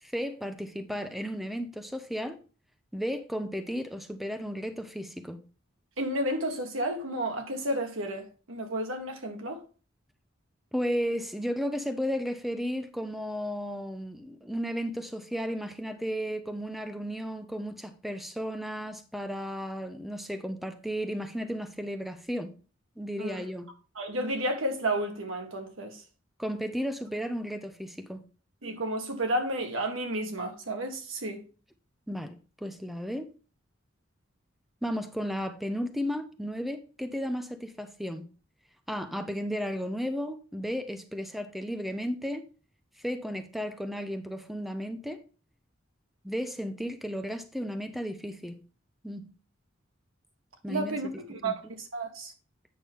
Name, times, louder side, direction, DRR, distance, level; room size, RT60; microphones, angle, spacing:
voice 1, 0.0-2.4 2.9-5.4 10.7-22.5 23.0-23.7 26.4-28.2 32.1-33.3 34.8-38.3 38.9-42.4 43.0-45.2 46.2-48.6 49.0-49.3 50.6-51.0 51.4-51.7, equal, ahead, 0.6 m, -34 dB
voice 2, 6.0-9.6 23.2-23.4 24.0-26.0 28.6-31.4 50.7-52.3, right 1 dB, 85° right, 1.6 m, -32 dB
8.5 x 5.8 x 3.5 m
head